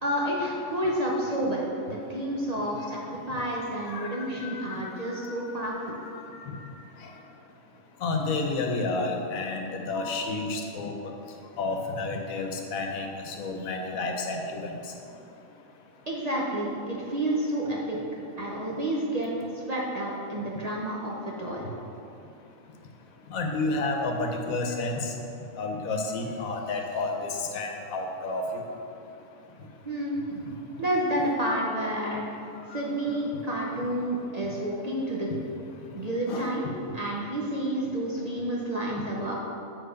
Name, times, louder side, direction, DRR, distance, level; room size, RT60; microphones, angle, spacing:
voice 1, 0.0-3.0 3.3-6.0 16.1-18.0 18.4-21.7 29.8-30.5 30.8-32.3 32.7-35.3 35.9-39.3, right 1 dB, 40° right, -3 dB, 0.6 m, -30 dB
voice 2, 4.4-4.8 6.4-6.6 8.0-10.9 11.6-14.7 23.3-25.1 25.6-28.6 32.7-32.8 36.3-36.5, left 3 dB, 85° left, 3 dB, 1.2 m, -30 dB
6.8 x 4.1 x 5.1 m, 2.7 s
omnidirectional pair, 1.4 m